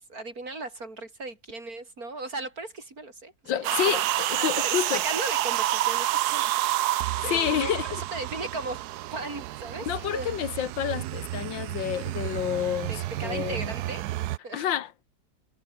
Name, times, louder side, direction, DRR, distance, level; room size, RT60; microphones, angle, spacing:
voice 1, 0.1-4.1 4.4-6.6 6.8-10.4 12.9-14.0 14.4-14.7, right 2 dB, 50° right, 5.1 m, -37 dB
voice 2, 3.5-5.0 7.3-8.0 9.9-13.7 14.5-14.9, left 10 dB, 85° left, 1.9 m, -29 dB
sound 1, 3.6-14.4, right 15 dB, 70° right, 1.0 m, -29 dB
omnidirectional pair, 2.0 m